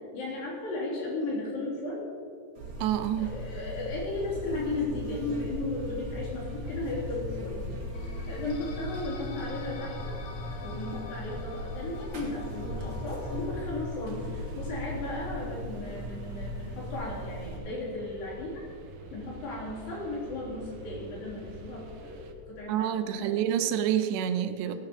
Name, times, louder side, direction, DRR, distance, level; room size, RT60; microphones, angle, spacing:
voice 1, 0.1-2.1 3.2-7.6 8.3-10.2 10.6-18.6 19.1-23.4 24.6-24.8, left 2 dB, 60° left, -4 dB, 4.9 m, -35 dB
Buzz, 2.5-17.6, left 1 dB, 45° right, 3.1 m, -38 dB
voice 2, 2.8-3.4 22.7-24.8, right 10 dB, 90° right, 9 dB, 3.0 m, -28 dB
sound 1, 4.1-22.3, right 3 dB, 70° right, 1.8 m, -47 dB
sound 2, 7.9-15.6, left 4 dB, 80° left, 3.4 m, -48 dB
18.0 x 6.7 x 7.0 m, 2.3 s
omnidirectional pair, 4.9 m